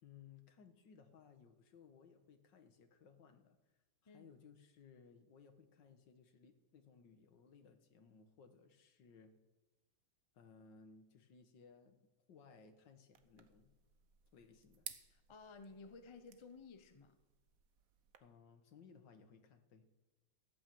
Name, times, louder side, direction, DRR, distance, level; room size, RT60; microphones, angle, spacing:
voice 1, 0.0-3.6 4.0-9.4 10.3-12.0 12.3-13.7 14.3-14.9 18.2-19.9, left 6 dB, 65° left, 2.0 m, -62 dB
sound 1, 13.1-18.2, right 8 dB, 55° right, 1.1 m, -57 dB
voice 2, 15.1-17.2, left 4 dB, 45° left, 0.3 m, -55 dB
14.5 x 8.9 x 7.8 m
omnidirectional pair, 2.2 m